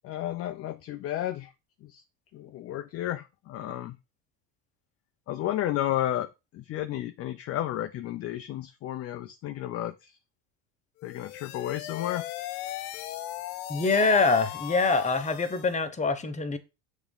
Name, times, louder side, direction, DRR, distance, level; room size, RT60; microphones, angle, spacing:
voice 1, 0.0-1.5 1.8-2.0 2.3-4.0 5.3-6.3 6.5-10.2 11.0-12.2, left 13 dB, 30° left, 0.4 m, -32 dB
sound 1, 11.0-15.8, left 13 dB, 75° left, 0.8 m, -38 dB
voice 2, 13.7-16.6, left 4 dB, 15° left, 0.9 m, -24 dB
7.0 x 3.6 x 5.3 m
supercardioid pair, 120°, 50 cm